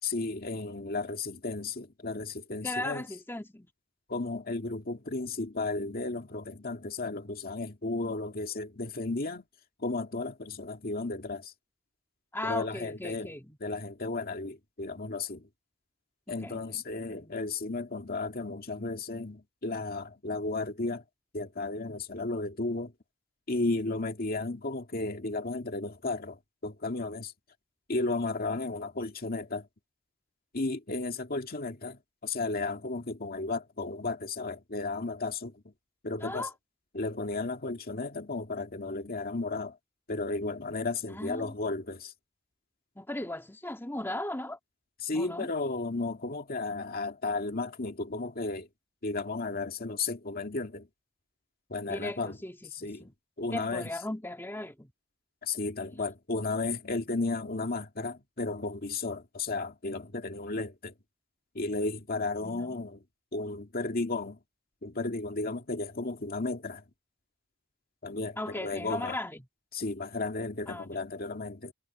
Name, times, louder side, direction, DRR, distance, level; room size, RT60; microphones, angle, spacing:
voice 1, 0.0-3.0 4.1-9.4 9.8-11.5 12.4-13.3 13.6-15.5 16.3-21.0 21.3-22.9 23.5-27.3 27.9-29.7 30.5-35.7 36.0-36.5 36.9-39.8 40.1-42.1 45.0-48.7 49.0-50.9 51.7-52.4 52.8-53.1 53.4-53.9 55.4-60.9 61.5-63.0 63.3-64.4 64.8-66.8 68.0-69.2 69.7-71.7, left 3 dB, 50° left, 2.2 m, -34 dB
voice 2, 2.6-3.7 12.3-13.6 16.3-16.8 17.1-17.3 36.2-36.5 41.1-41.5 43.0-44.6 45.1-45.5 51.9-53.1 53.5-54.9 62.4-62.8 68.4-69.4 70.7-71.0, left 1 dB, 10° left, 2.2 m, -37 dB
head